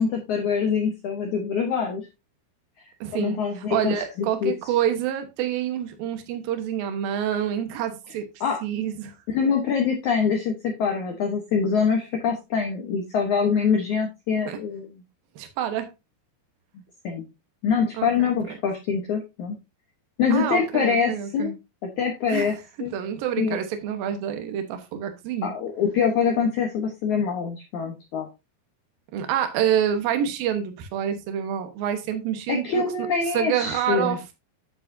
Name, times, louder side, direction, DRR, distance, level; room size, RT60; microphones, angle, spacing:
voice 1, 0.0-2.0 3.1-4.5 8.4-8.6 9.3-14.9 17.0-17.3 17.6-19.6 20.2-21.5 22.0-22.5 22.8-22.9 23.4-23.6 25.4-28.3 32.5-34.2, left 6 dB, 85° left, 2 dB, 1.7 m, -24 dB
voice 2, 3.0-8.3 8.6-9.1 14.5-14.6 15.4-15.9 17.9-18.6 20.3-21.5 22.3-22.6 22.9-25.5 29.1-34.3, right 9 dB, 65° right, 7 dB, 2.5 m, -27 dB
9.7 x 7.5 x 2.7 m, 0.25 s
omnidirectional pair, 5.4 m